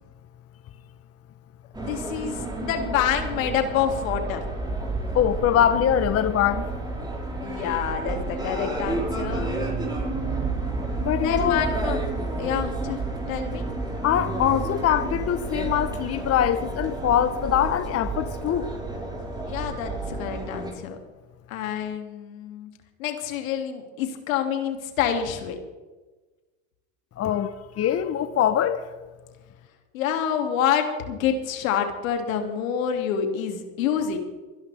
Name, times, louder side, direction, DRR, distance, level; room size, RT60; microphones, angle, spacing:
sound 1, 1.7-20.7, right 2 dB, 10° right, 5.7 m, -30 dB
voice 1, 1.8-4.4 7.4-9.7 11.2-12.0 12.4-13.6 19.4-21.0 21.5-22.7 23.0-25.6 29.9-34.2, left 8 dB, 80° left, 2.8 m, -27 dB
voice 2, 5.1-6.7 11.0-11.6 14.0-18.7 27.2-28.8, left 10 dB, 35° left, 1.1 m, -23 dB
24.0 x 11.5 x 3.6 m
hypercardioid pair, 95°, 40 cm